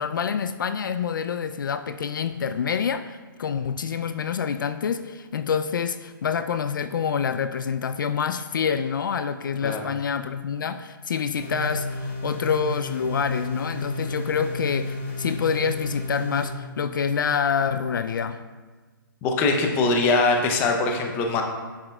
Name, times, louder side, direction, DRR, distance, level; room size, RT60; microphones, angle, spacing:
voice 1, 0.0-18.4, left 6 dB, 65° left, 10 dB, 0.4 m, -27 dB
sound 1, 11.3-16.5, left 2 dB, 35° left, 1.4 m, -32 dB
voice 2, 19.2-21.4, left 3 dB, 15° left, 3 dB, 0.6 m, -22 dB
9.7 x 6.6 x 2.3 m, 1.4 s
hypercardioid pair, 155°, 12 cm